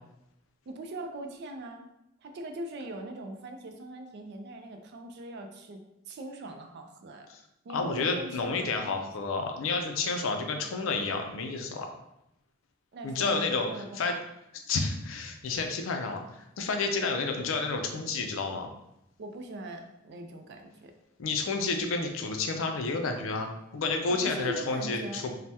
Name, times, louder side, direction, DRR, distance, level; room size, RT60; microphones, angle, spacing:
voice 1, 0.7-1.9 2.2-7.3 7.6-9.1 12.9-14.1 19.2-20.9 24.1-25.3, right 1 dB, 55° right, 5 dB, 0.4 m, -41 dB
voice 2, 7.7-11.9 13.0-14.1 14.7-18.7 21.2-25.3, left 3 dB, 70° left, 4 dB, 0.4 m, -30 dB
3.3 x 2.1 x 2.7 m, 0.85 s
head